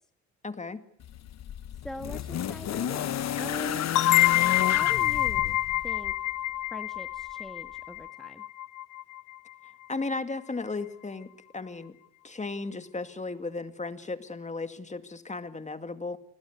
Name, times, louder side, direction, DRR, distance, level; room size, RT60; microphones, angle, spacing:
voice 1, 0.4-0.8 9.9-11.3 11.5-12.0 12.2-16.2, left 3 dB, 25° left, 10 dB, 2.4 m, -35 dB
sound 1, 1.0-6.2 7.3-7.4, left 10 dB, 60° left, 1.2 m, -32 dB
voice 2, 1.8-3.9 4.6-5.6 5.8-6.2 6.7-8.5, equal, ahead, 8 dB, 1.6 m, -42 dB
sound 2, 4.0-9.4, left 14 dB, 85° left, 1.1 m, -26 dB
28.5 x 21.5 x 8.4 m, 0.65 s
cardioid pair, 90°, 30 cm